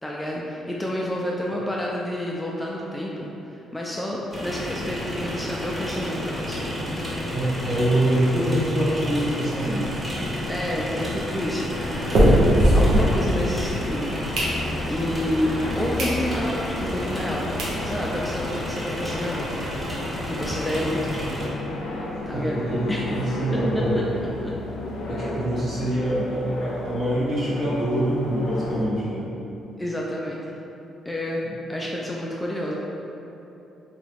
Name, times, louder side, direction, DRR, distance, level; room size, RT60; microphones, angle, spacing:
voice 1, 0.0-7.0 10.5-11.7 12.7-14.2 14.9-17.5 17.8-19.6 20.3-21.3 22.3-22.6 22.9-23.1 23.5-23.6 24.4-24.5 29.8-30.4 31.1-32.7, left 1 dB, 10° left, -4 dB, 0.3 m, -29 dB
sound 1, 4.3-21.5, left 1 dB, 15° right, 0.7 m, -31 dB
voice 2, 7.3-10.0 12.7-13.2 22.3-24.0 25.1-29.3 31.4-31.5, right 1 dB, 45° right, -8 dB, 1.0 m, -25 dB
sound 2, 10.1-13.7 14.1-15.0 15.5-15.6 16.0-16.2 16.6-16.7 17.3-17.4 17.6-17.8 18.2-18.3 18.5-18.6 18.9-19.0 19.3-20.5, equal, 70° right, 0.7 m, -22 dB
sound 3, 11.7-28.9, left 1 dB, 90° left, 0.4 m, -34 dB
2.8 x 2.3 x 3.4 m, 2.9 s
cardioid pair, 90°, 0 cm